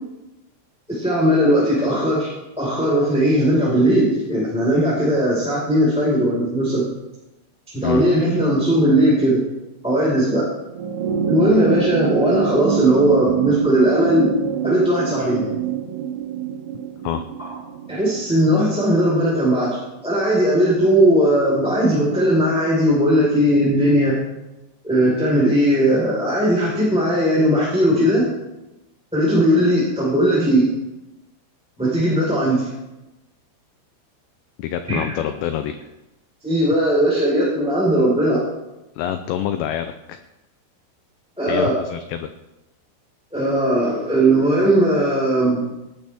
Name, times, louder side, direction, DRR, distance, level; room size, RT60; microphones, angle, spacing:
voice 1, 0.9-2.3 2.6-6.9 7.7-9.4 9.8-10.4 11.3-14.3 14.6-15.5 17.9-19.7 20.0-24.2 24.8-28.3 29.1-30.7 31.8-32.7 34.9-35.0 36.4-38.4 41.4-41.7 43.3-45.6, right 1 dB, ahead, -7 dB, 3.9 m, -18 dB
sound 1, 10.7-19.4 20.6-20.7, right 7 dB, 75° right, 3.4 m, -25 dB
voice 2, 34.6-35.8 39.0-40.2 41.5-42.3, left 10 dB, 90° left, 8 dB, 2.4 m, -26 dB
18.5 x 12.0 x 3.6 m, 0.98 s
omnidirectional pair, 5.8 m